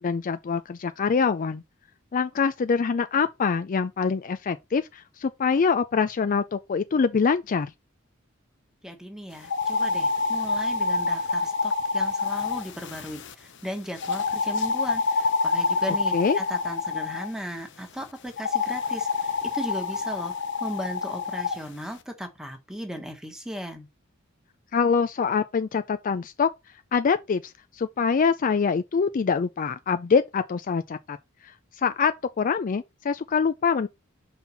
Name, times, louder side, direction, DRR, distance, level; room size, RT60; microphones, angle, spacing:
voice 1, 0.0-1.6 2.1-7.7 16.1-16.4 24.7-26.5 26.9-31.2 31.8-33.9, left 5 dB, 40° left, 0.4 m, -24 dB
voice 2, 8.8-19.3 19.5-20.3 20.6-23.9, equal, 5° right, 1.4 m, -36 dB
sound 1, 9.4-13.3 14.0-17.3 18.4-21.6, left 4 dB, 60° left, 0.8 m, -27 dB
5.6 x 4.3 x 5.5 m
head